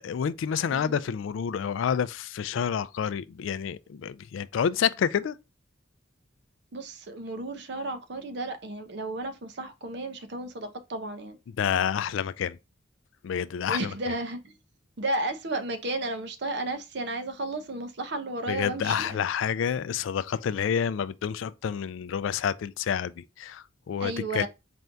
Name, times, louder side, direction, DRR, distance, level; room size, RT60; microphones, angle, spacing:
voice 1, 0.0-5.4 11.6-12.6 13.2-14.1 18.5-24.5, left 8 dB, 70° left, 0.3 m, -29 dB
voice 2, 0.7-1.0 6.7-11.4 13.7-14.5 15.0-19.2 24.0-24.5, right 2 dB, 55° right, 0.7 m, -33 dB
4.3 x 2.6 x 3.4 m
head